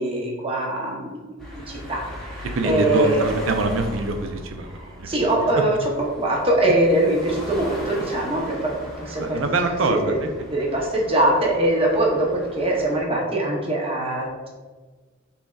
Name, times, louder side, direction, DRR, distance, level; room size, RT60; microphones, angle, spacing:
voice 1, 0.0-3.2 4.7-8.7 9.0-9.4 9.9-10.0 10.5-14.5, right 1 dB, 30° right, -2 dB, 0.8 m, -22 dB
sound 1, 1.4-13.0, equal, ahead, 0.9 m, -38 dB
voice 2, 2.4-5.2 9.2-10.3, right 2 dB, 75° right, 6 dB, 0.5 m, -24 dB
5.1 x 3.4 x 2.3 m, 1.3 s
head